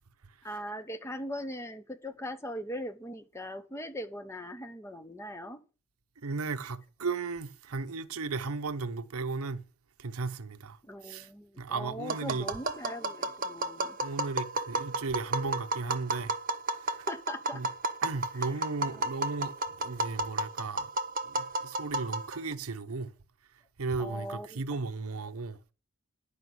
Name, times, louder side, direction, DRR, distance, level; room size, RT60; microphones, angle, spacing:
voice 1, 0.4-5.6 10.8-14.0 17.1-17.6 18.3-18.5 18.9-19.1 24.0-24.6, equal, 10° left, 0.9 m, -40 dB
voice 2, 6.2-9.6 10.0-11.3 11.6-12.5 14.0-16.4 16.7-17.1 17.5-17.7 18.0-20.9 21.2-23.1 23.8-25.6, right 4 dB, 80° right, 0.8 m, -35 dB
Tap, 12.1-22.5, right 2 dB, 40° right, 0.9 m, -33 dB
11.0 x 5.2 x 7.9 m
head